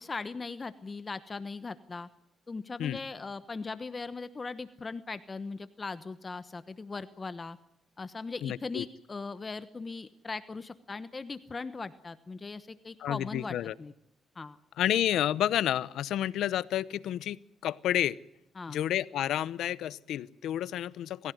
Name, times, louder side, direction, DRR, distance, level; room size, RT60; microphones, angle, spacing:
voice 1, 0.0-2.1 2.5-7.6 8.0-13.9 14.3-14.6 18.5-18.8, left 4 dB, 30° left, 13 dB, 1.1 m, -39 dB
voice 2, 8.4-8.8 13.0-13.7 14.8-18.2 18.7-21.3, left 11 dB, 80° left, 18 dB, 0.8 m, -30 dB
26.5 x 16.0 x 9.4 m, 0.80 s
cardioid pair, 90°, 0 cm